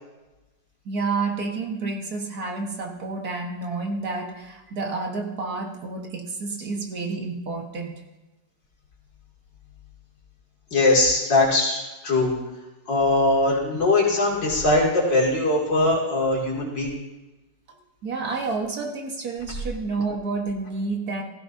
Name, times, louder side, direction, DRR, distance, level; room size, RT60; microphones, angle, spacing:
voice 1, 0.9-8.0 18.0-21.2, right 3 dB, 60° right, 1 dB, 1.9 m, -29 dB
voice 2, 10.7-12.3 12.9-16.9, left 2 dB, 80° left, -3 dB, 3.4 m, -21 dB
16.0 x 15.0 x 2.7 m, 1.1 s
omnidirectional pair, 1.9 m